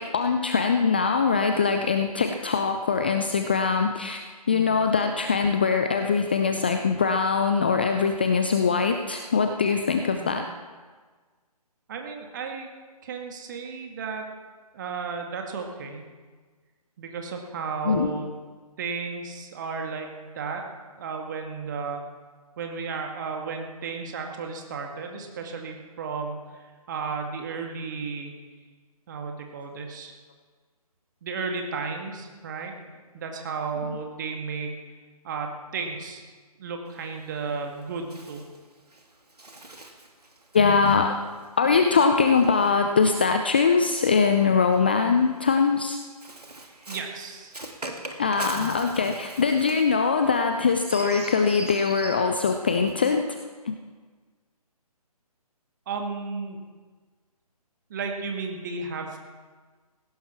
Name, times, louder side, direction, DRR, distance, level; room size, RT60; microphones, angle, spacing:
voice 1, 0.0-4.2 4.5-10.5 17.8-18.1 40.5-41.2 41.6-46.0 48.2-53.4 53.7-53.8, left 5 dB, 15° left, 6 dB, 0.4 m, -22 dB
voice 2, 11.9-12.7 13.0-14.3 14.7-16.0 17.0-18.3 18.8-20.6 21.0-22.0 22.6-28.3 29.1-30.1 31.2-32.7 33.1-34.8 35.2-36.2 36.6-38.4 46.9-47.6 55.9-56.6 57.9-59.3, right 5 dB, 30° right, 3 dB, 2.0 m, -33 dB
Bird, 36.9-43.4 44.3-53.1, right 2 dB, 80° right, 2.4 m, -43 dB
18.5 x 16.0 x 4.5 m, 1.4 s
figure-of-eight pair, 145°, 20 cm